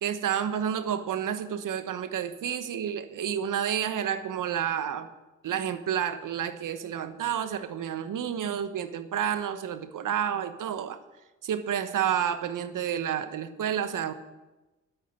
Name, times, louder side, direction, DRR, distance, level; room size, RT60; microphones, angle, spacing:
voice 1, 0.0-5.1 5.4-11.0 11.4-14.1, right 9 dB, 70° right, 11 dB, 1.1 m, -30 dB
9.6 x 8.0 x 9.3 m, 1.1 s
supercardioid pair, 45°, 33 cm